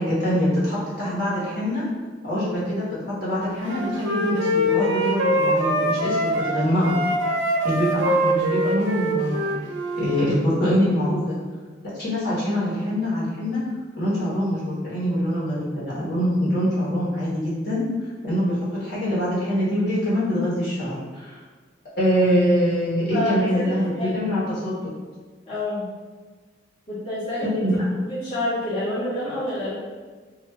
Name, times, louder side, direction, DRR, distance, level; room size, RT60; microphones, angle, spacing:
voice 1, 0.0-1.8 2.3-2.8 3.2-6.9 7.6-9.5 10.0-11.3 12.0-13.6 13.9-21.4 22.0-24.9 27.6-27.9, equal, 60° left, -9 dB, 1.3 m, -24 dB
Wind instrument woodwind instrument, 3.7-6.6 6.8-10.3, equal, 85° right, 0.5 m, -23 dB
voice 2, 23.1-24.3 25.5-25.9 26.9-27.5 28.0-29.7, left 1 dB, 35° left, -13 dB, 1.0 m, -28 dB
2.7 x 2.5 x 3.2 m, 1.4 s
head